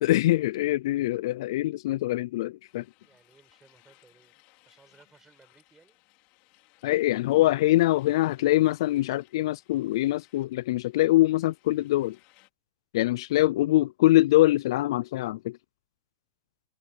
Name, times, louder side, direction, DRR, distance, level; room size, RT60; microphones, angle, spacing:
voice 1, 0.0-2.8 6.8-12.2 12.9-15.6, left 16 dB, 60° left, 0.4 m, -23 dB
sound 1, 2.7-12.5, left 24 dB, 45° left, 4.3 m, -63 dB
voice 2, 3.0-6.0, right 4 dB, 10° right, 7.7 m, -61 dB
hypercardioid pair, 135°, 3 cm